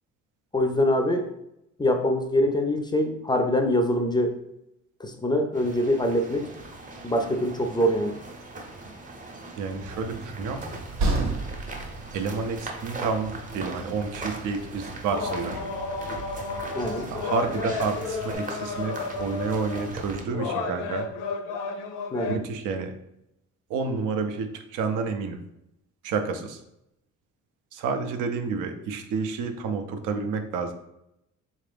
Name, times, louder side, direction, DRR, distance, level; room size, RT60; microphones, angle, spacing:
voice 1, 0.5-1.3 1.8-4.3 5.0-6.5 7.0-8.1 16.7-17.1 22.1-22.4, left 1 dB, 15° left, 4 dB, 0.3 m, -24 dB
sound 1, 5.5-20.2, right 2 dB, 25° right, 0.7 m, -40 dB
voice 2, 9.6-10.6 12.1-15.6 17.1-21.1 22.3-22.9 23.7-25.4 26.0-26.6 27.7-30.7, right 5 dB, 90° right, 7 dB, 0.6 m, -30 dB
Train, 9.8-18.4, right 2 dB, 65° right, 0.8 m, -35 dB
sound 2, 15.1-19.9 20.3-22.4, left 4 dB, 85° left, 0.5 m, -32 dB
3.7 x 2.5 x 3.4 m, 0.83 s
cardioid pair, 110°, 30 cm